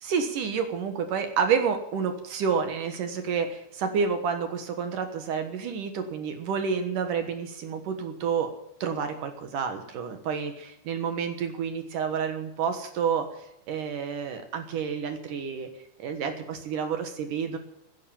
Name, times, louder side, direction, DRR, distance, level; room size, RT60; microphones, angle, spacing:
voice 1, 0.0-8.5 8.8-13.3 13.7-15.7 16.0-17.6, right 6 dB, 65° right, 6 dB, 2.7 m, -29 dB
16.0 x 10.0 x 7.3 m, 0.81 s
omnidirectional pair, 4.5 m